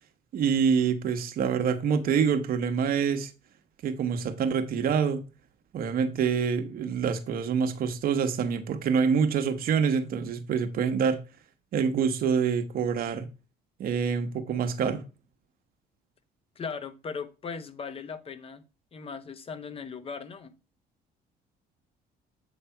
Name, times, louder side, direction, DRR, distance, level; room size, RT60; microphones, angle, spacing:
voice 1, 0.3-3.3 3.8-5.2 5.7-11.2 11.7-13.2 13.8-15.0, right 6 dB, 60° right, 1.0 m, -26 dB
voice 2, 16.6-18.6 18.9-20.5, left 5 dB, 35° left, 0.9 m, -38 dB
8.0 x 3.3 x 5.7 m
cardioid pair, 110°, 17 cm